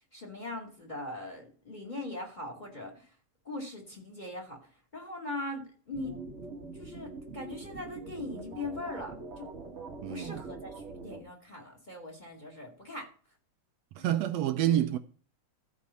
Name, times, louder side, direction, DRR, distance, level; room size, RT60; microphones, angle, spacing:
voice 1, 0.1-3.1 3.4-4.6 4.9-6.2 6.7-9.5 10.1-10.7 11.0-13.1 14.0-14.1, left 2 dB, 15° left, 2.0 m, -40 dB
sound 1, 5.9-11.2, right 3 dB, 35° right, 1.2 m, -43 dB
voice 2, 10.0-10.4 14.0-15.0, right 12 dB, 75° right, 1.6 m, -28 dB
14.0 x 5.1 x 5.6 m
omnidirectional pair, 3.4 m